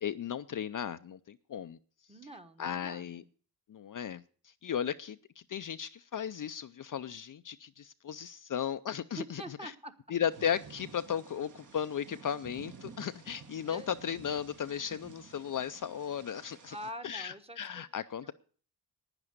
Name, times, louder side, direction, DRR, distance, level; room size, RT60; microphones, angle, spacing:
voice 1, 0.0-1.8 2.6-3.2 3.7-9.7 10.1-16.8 17.0-18.3, left 8 dB, 50° left, 0.5 m, -36 dB
voice 2, 2.1-3.3 9.1-10.0 13.6-13.9 16.7-17.8 18.2-18.3, right 1 dB, 15° right, 1.1 m, -45 dB
Thunder / Rain, 10.3-16.9, right 6 dB, 45° right, 1.4 m, -53 dB
11.0 x 9.8 x 6.5 m
wide cardioid pair, 140°, 41 cm